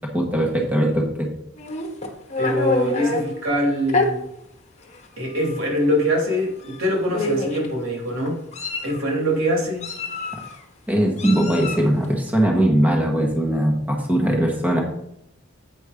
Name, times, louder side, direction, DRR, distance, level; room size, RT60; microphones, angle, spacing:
voice 1, 0.1-1.3 10.9-14.8, right 1 dB, 10° right, 0 dB, 1.3 m, -20 dB
Meow, 1.6-3.2 3.9-4.1 4.9-5.0 5.4-5.6 6.6-6.8 7.1-7.7 8.3-9.0 9.8-10.5 11.2-11.9, left 2 dB, 35° left, 1.2 m, -26 dB
voice 2, 2.4-4.2 5.2-8.4 8.8-9.9, equal, 85° right, -1 dB, 3.0 m, -23 dB
8.4 x 5.3 x 5.1 m, 0.79 s
head